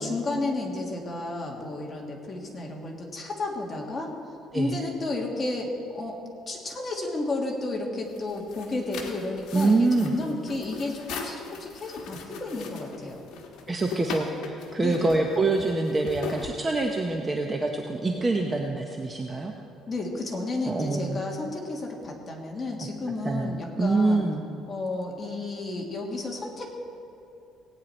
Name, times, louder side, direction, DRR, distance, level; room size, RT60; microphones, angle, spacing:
voice 1, 0.0-6.2 6.5-13.2 14.8-15.3 19.9-24.2 24.7-26.7, left 2 dB, 20° left, 0 dB, 1.7 m, -32 dB
sound 1, 8.0-17.2, left 5 dB, 65° left, 1.4 m, -40 dB
voice 2, 9.5-10.1 13.7-19.5 20.6-21.2 23.2-24.4, right 3 dB, 15° right, 2 dB, 0.7 m, -25 dB
17.5 x 9.2 x 4.3 m, 2.7 s
cardioid pair, 150°, 0 cm